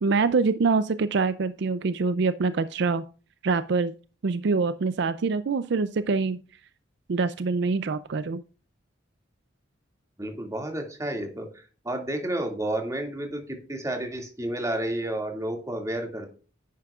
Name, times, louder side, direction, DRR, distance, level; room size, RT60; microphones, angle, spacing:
voice 1, 0.0-3.0 3.4-3.9 4.2-6.4 7.1-8.4, right 4 dB, 60° right, 13 dB, 0.4 m, -25 dB
voice 2, 10.2-16.4, right 1 dB, 15° right, 3 dB, 2.2 m, -31 dB
10.0 x 9.4 x 2.4 m, 0.36 s
head